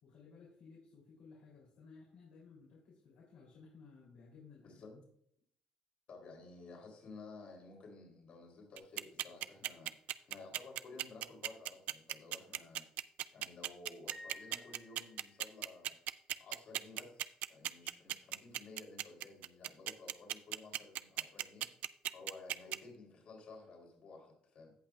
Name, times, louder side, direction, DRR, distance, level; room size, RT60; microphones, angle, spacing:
voice 1, 0.0-4.7, left 4 dB, 80° left, -4 dB, 3.1 m, -58 dB
voice 2, 4.6-5.0 6.1-9.9 10.2-12.8 13.3-15.9 16.4-21.8 22.0-24.7, left 3 dB, 60° left, 0 dB, 3.4 m, -54 dB
sound 1, 8.8-22.8, right 14 dB, 80° right, 0.3 m, -37 dB
Piano, 14.1-15.6, left 1 dB, 15° right, 1.1 m, -54 dB
16.5 x 5.6 x 2.4 m, 0.69 s
cardioid pair, 100°, 2 cm